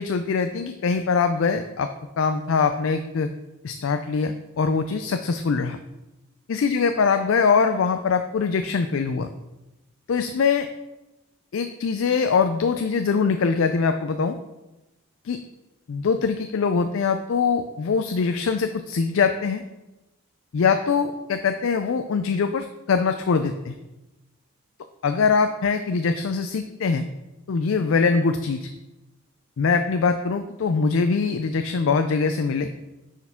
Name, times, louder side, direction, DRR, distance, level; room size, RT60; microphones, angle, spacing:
voice 1, 0.0-1.9 2.2-3.3 3.6-5.8 6.5-9.3 10.1-10.7 11.5-14.4 15.2-15.4 15.9-19.6 20.5-23.7 25.0-27.0 27.5-28.7 29.6-32.7, left 5 dB, 70° left, 8 dB, 0.4 m, -23 dB
9.9 x 4.6 x 3.6 m, 0.98 s
head